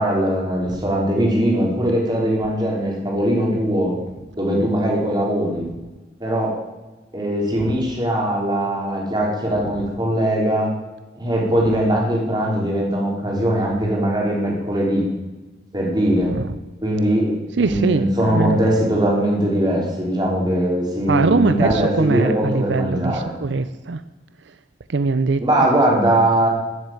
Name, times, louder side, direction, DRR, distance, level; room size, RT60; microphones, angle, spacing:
voice 1, 0.0-3.9 4.4-5.6 6.2-6.6 7.1-10.7 11.2-15.0 15.7-16.3 16.8-23.3 25.4-26.5, right 1 dB, 20° right, -2 dB, 3.7 m, -20 dB
voice 2, 16.2-16.6 17.6-18.6 21.1-24.0 24.4-24.6 24.9-25.5, right 3 dB, 70° right, 12 dB, 0.5 m, -22 dB
14.0 x 7.7 x 9.0 m, 1.1 s
head